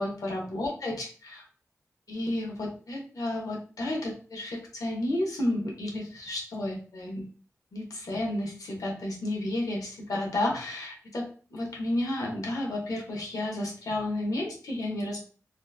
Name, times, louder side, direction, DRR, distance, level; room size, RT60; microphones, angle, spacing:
voice 1, 0.0-1.4 2.1-7.3 7.7-15.2, left 1 dB, 75° left, -1 dB, 0.9 m, -32 dB
2.9 x 2.1 x 2.3 m, 0.40 s
cardioid pair, 45°, 6 cm